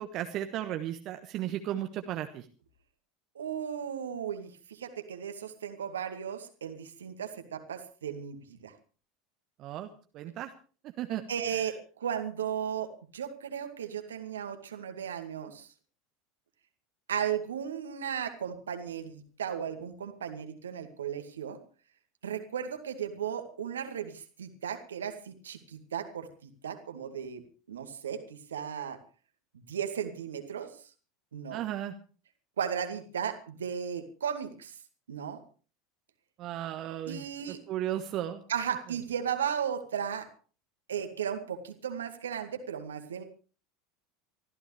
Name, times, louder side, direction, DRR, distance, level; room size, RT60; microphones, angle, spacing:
voice 1, 0.0-2.5 9.6-10.5 11.0-11.2 11.5-11.7 31.5-31.9 36.4-38.4, right 12 dB, 45° right, 7 dB, 1.2 m, -35 dB
voice 2, 3.4-8.7 11.3-15.7 17.1-21.6 22.2-29.0 29.5-30.7 31.3-31.6 32.6-34.8 35.1-35.4 37.1-37.6 38.5-40.3 40.9-43.2, right 8 dB, 70° right, 7 dB, 2.1 m, -35 dB
24.0 x 14.5 x 3.3 m, 0.39 s
figure-of-eight pair, 75°, 0 cm